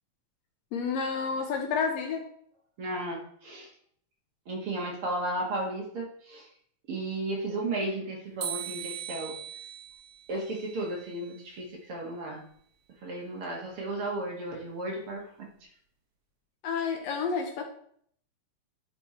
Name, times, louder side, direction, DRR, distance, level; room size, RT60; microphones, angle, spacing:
voice 1, 0.7-2.3 16.6-17.6, left 5 dB, 70° left, 4 dB, 1.8 m, -30 dB
voice 2, 2.8-3.7 4.5-6.5 6.9-9.4 10.3-12.4 13.0-15.2, right 2 dB, 50° right, -2 dB, 2.2 m, -34 dB
sound 1, 8.4-11.5, right 10 dB, 80° right, 2.7 m, -40 dB
10.5 x 4.4 x 4.3 m, 0.63 s
omnidirectional pair, 3.5 m